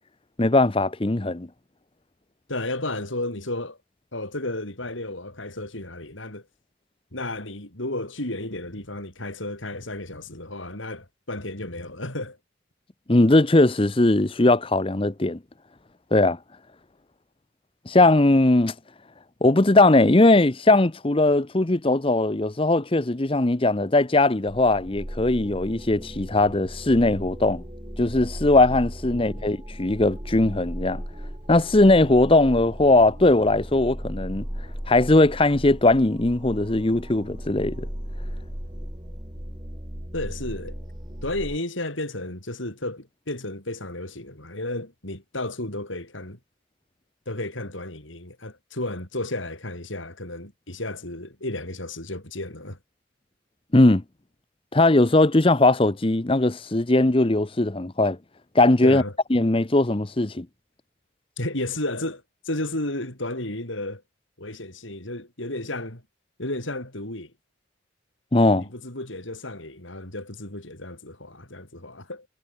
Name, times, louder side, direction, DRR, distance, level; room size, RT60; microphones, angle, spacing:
voice 1, 0.4-1.5 13.1-15.4 16.1-16.4 17.9-18.7 19.4-27.6 28.0-31.0 31.5-34.4 34.9-37.9 53.7-54.0 54.7-58.2 58.5-59.0 59.3-60.5 68.3-68.7, left 2 dB, 25° left, 0.8 m, -19 dB
voice 2, 2.5-3.8 4.1-6.4 7.1-12.4 29.1-29.4 40.1-40.8 41.2-46.4 47.3-52.8 58.8-59.1 61.4-64.0 64.4-66.0 66.4-67.3 68.6-72.3, left 1 dB, 75° left, 6.5 m, -33 dB
sound 1, 24.5-41.6, equal, 20° right, 3.5 m, -36 dB
head